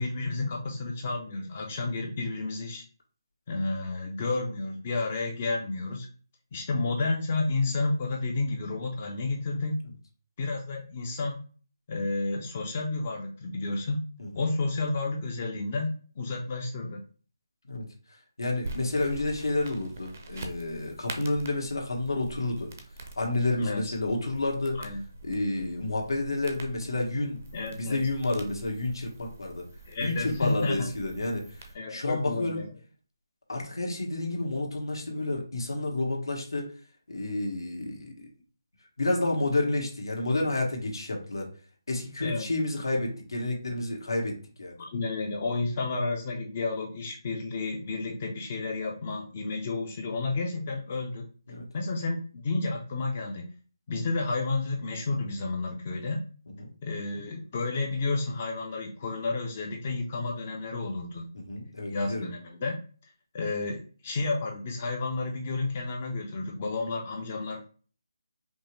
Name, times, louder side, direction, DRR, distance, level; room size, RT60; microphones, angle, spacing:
voice 1, 0.0-2.8 3.5-6.1 6.5-9.8 10.4-11.4 11.9-14.0 14.4-15.9 16.2-17.0 23.6-23.9 24.8-25.0 27.5-28.0 29.9-30.9 31.7-32.7 42.2-42.5 44.8-51.3 51.7-53.5 53.9-56.2 56.8-61.3 61.9-62.8 63.3-67.7, left 3 dB, 20° left, 1 dB, 0.4 m, -31 dB
voice 2, 18.4-22.7 23.2-24.8 25.2-27.4 27.7-29.7 30.0-31.6 31.9-32.6 33.5-36.7 37.1-38.3 39.0-41.5 41.9-44.8 51.5-51.7 56.6-56.7 61.3-62.3, left 2 dB, 85° left, 0 dB, 1.4 m, -30 dB
sound 1, 18.6-31.7, right 2 dB, 30° right, 0.5 m, -45 dB
5.1 x 2.0 x 3.1 m, 0.40 s
hypercardioid pair, 175°, 2 cm